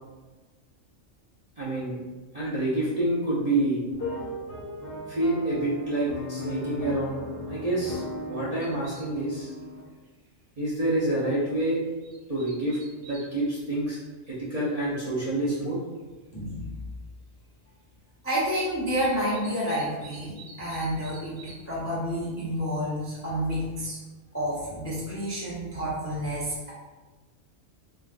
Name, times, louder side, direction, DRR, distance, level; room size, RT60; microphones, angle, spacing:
voice 1, 1.6-2.0 2.3-3.9 5.1-7.2 7.5-8.0 8.3-9.5 10.6-11.8 12.3-14.0 14.3-15.8, right 1 dB, 45° right, -8 dB, 0.5 m, -27 dB
sound 1, 3.9-9.8, left 1 dB, 55° left, 0.8 m, -36 dB
sound 2, 8.6-9.3 9.6-9.7 10.0-10.3 10.7-10.8 11.7-13.3 14.0-14.1 15.3-15.4 16.0-16.1 16.3-16.7 19.0-21.7 21.9-22.6, right 4 dB, 65° right, 0.9 m, -49 dB
voice 2, 18.2-21.4 21.7-24.0 24.3-26.7, equal, 20° left, -8 dB, 0.3 m, -29 dB
3.3 x 2.4 x 2.4 m, 1.3 s
omnidirectional pair, 1.3 m